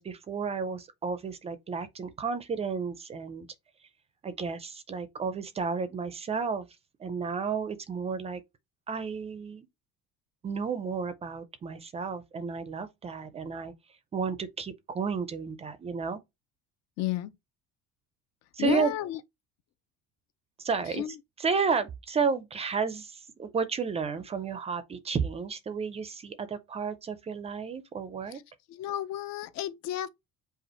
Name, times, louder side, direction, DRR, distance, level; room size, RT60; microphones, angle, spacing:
voice 1, 0.0-3.5 4.2-6.7 7.0-8.4 8.9-9.7 10.4-13.7 14.1-16.2 18.5-18.9 20.6-21.0 21.4-28.4, right 5 dB, 20° right, 0.4 m, -32 dB
voice 2, 17.0-17.3 18.6-19.2 20.9-21.2 28.7-30.1, left 13 dB, 60° left, 0.6 m, -32 dB
5.3 x 2.4 x 4.2 m
cardioid pair, 170°, 30 cm